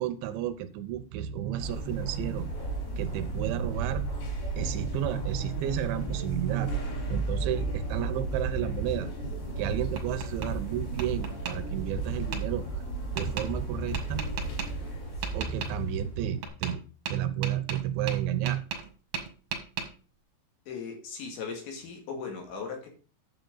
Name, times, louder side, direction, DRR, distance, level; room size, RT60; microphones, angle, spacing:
voice 1, 0.0-2.5 3.0-4.1 4.6-9.1 9.6-12.8 13.2-14.2 15.3-16.8 17.1-18.6, right 10 dB, 80° right, 11 dB, 3.1 m, -31 dB
sound 1, 1.6-16.5, right 3 dB, 55° left, 6.0 m, -34 dB
Tap, 9.5-10.5 11.0-11.5 12.3-12.4 13.2-13.5 13.9-14.7 15.2-15.7 16.4-16.8 17.1-18.9 19.1-19.9, right 6 dB, 60° right, 1.8 m, -35 dB
voice 2, 20.7-22.9, left 5 dB, 75° left, 2 dB, 4.5 m, -38 dB
10.0 x 7.7 x 3.9 m, 0.38 s
omnidirectional pair, 5.3 m